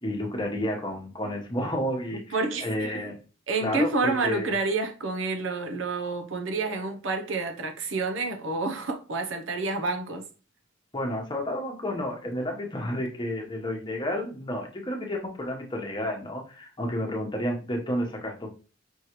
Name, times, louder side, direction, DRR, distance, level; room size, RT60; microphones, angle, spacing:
voice 1, 0.0-3.2 3.6-4.5 10.9-18.5, equal, 25° left, 1.0 m, -31 dB
voice 2, 2.1-2.9 3.5-10.2, right 3 dB, 85° right, 0.8 m, -29 dB
5.4 x 3.1 x 3.0 m
head